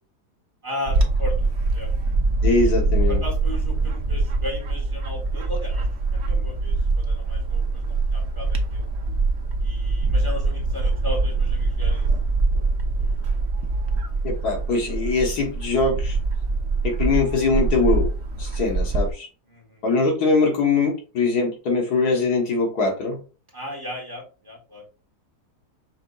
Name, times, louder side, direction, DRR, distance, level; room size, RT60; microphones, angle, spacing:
voice 1, 0.6-1.9 3.1-8.9 9.6-12.1 14.7-14.8 19.5-19.8 23.5-24.8, left 1 dB, 20° right, 2.0 m, -36 dB
Bird / Wind, 0.9-19.1, right 3 dB, 50° right, 0.9 m, -23 dB
voice 2, 2.4-3.2 14.2-16.2 16.8-18.1 18.4-19.3 19.8-23.2, left 3 dB, 70° left, 1.7 m, -22 dB
6.0 x 3.7 x 2.3 m
omnidirectional pair, 1.7 m